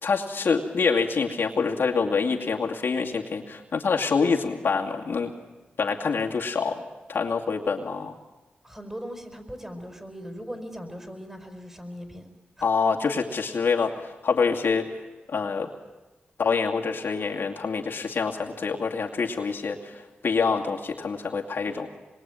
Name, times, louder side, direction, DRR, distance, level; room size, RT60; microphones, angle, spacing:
voice 1, 0.0-5.3 5.8-6.8 7.1-8.1 12.6-14.9 15.3-15.7 16.4-21.9, left 5 dB, 70° left, 1 dB, 2.5 m, -26 dB
voice 2, 8.6-12.3 12.6-12.7, equal, 10° right, 6 dB, 5.1 m, -39 dB
26.0 x 22.0 x 9.2 m, 1.1 s
cardioid pair, 60°, 4 cm